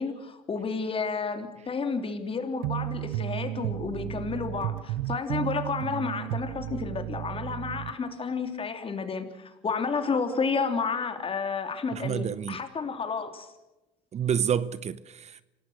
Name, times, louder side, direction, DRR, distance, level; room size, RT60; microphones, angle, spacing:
voice 1, 0.0-13.5, left 5 dB, 35° left, 3.1 m, -31 dB
sound 1, 2.6-7.9, right 15 dB, 80° right, 0.7 m, -33 dB
voice 2, 11.9-12.6 14.1-15.4, right 8 dB, 40° right, 0.8 m, -29 dB
27.0 x 18.0 x 6.5 m
supercardioid pair, 80°, 17 cm